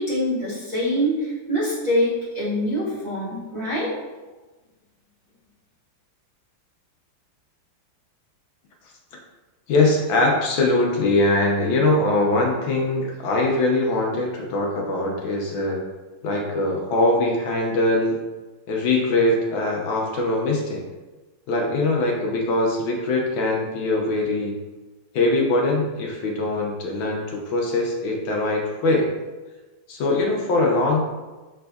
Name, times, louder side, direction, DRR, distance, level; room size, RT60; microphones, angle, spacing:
voice 1, 0.0-3.9, equal, 25° right, -12 dB, 1.0 m, -24 dB
voice 2, 9.7-15.8 16.2-18.2 18.7-20.8 21.5-24.6 25.1-29.1 29.9-31.1, left 2 dB, 75° left, -1 dB, 1.4 m, -22 dB
5.8 x 3.4 x 2.2 m, 1.2 s
omnidirectional pair, 2.3 m